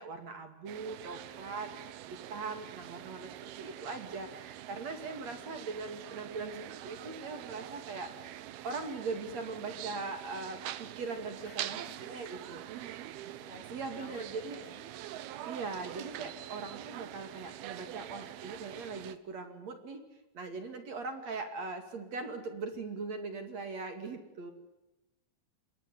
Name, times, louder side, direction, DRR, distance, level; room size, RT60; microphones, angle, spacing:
voice 1, 0.0-1.7 2.1-12.7 13.2-13.3 13.7-14.6 15.4-20.0 20.3-24.5, right 4 dB, 45° right, 8 dB, 3.3 m, -40 dB
sound 1, 0.7-19.2, right 13 dB, 75° right, 2.9 m, -45 dB
voice 2, 11.4-12.2 12.8-14.8, left 5 dB, 70° left, 6 dB, 5.6 m, -55 dB
28.0 x 21.0 x 9.6 m, 0.97 s
omnidirectional pair, 4.7 m